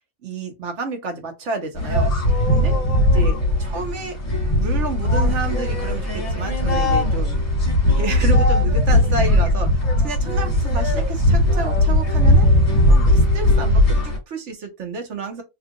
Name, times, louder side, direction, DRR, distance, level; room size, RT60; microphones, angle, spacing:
voice 1, 0.2-2.1 2.4-2.8 3.1-4.2 4.5-7.4 7.9-12.5 12.9-15.4, right 4 dB, 60° right, 1.2 m, -30 dB
sound 1, 1.7-14.2, left 1 dB, 25° left, 1.2 m, -18 dB
2.9 x 2.5 x 3.6 m
omnidirectional pair, 1.4 m